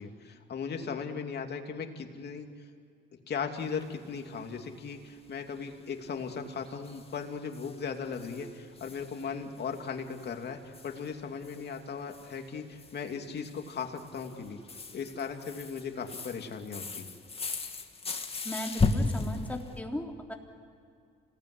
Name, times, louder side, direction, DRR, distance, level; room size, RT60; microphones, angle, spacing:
voice 1, 0.0-2.5 3.3-14.6 14.9-17.1, left 6 dB, 55° left, 4 dB, 2.9 m, -37 dB
sound 1, 3.8-4.1 4.4-4.5 4.7-4.8 5.2-5.3 5.6-5.7 6.0-6.1 6.6-11.8 12.1-19.8, left 3 dB, 30° left, 2.2 m, -36 dB
voice 2, 18.4-20.3, left 1 dB, 5° left, 1 dB, 3.6 m, -37 dB
27.0 x 19.0 x 9.9 m, 2.4 s
cardioid pair, 90°, 20 cm